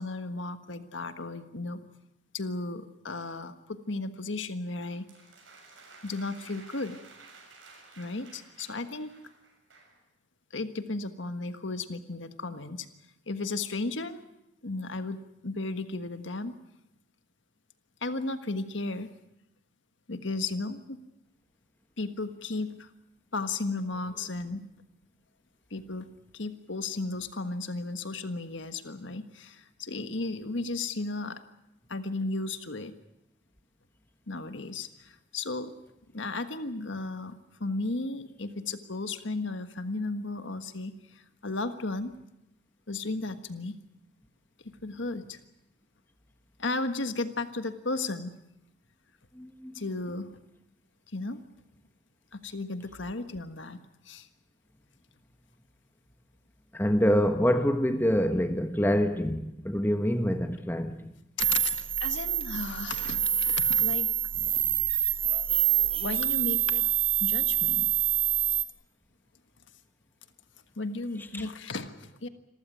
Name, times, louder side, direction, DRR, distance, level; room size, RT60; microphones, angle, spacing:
voice 1, 0.0-1.8 2.3-5.1 6.0-7.0 8.0-9.1 10.5-12.9 13.3-14.2 14.6-16.6 18.0-19.1 20.1-21.0 22.0-22.9 23.3-24.7 25.7-31.4 31.9-32.9 34.3-35.7 36.1-37.3 37.6-42.1 42.9-43.8 44.8-45.4 46.6-48.3 49.7-50.3 51.1-51.5 52.3-54.3 61.4-64.1 65.6-66.8 67.2-67.8 70.8-72.3, left 3 dB, 70° left, 1.5 m, -34 dB
sound 1, 4.8-10.0, right 3 dB, 80° right, 6.9 m, -53 dB
voice 2, 49.4-49.7 56.7-61.1 71.3-71.4, equal, 10° left, 1.2 m, -26 dB
sound 2, 61.4-68.6, right 10 dB, 30° right, 1.1 m, -26 dB
26.5 x 14.5 x 9.2 m
head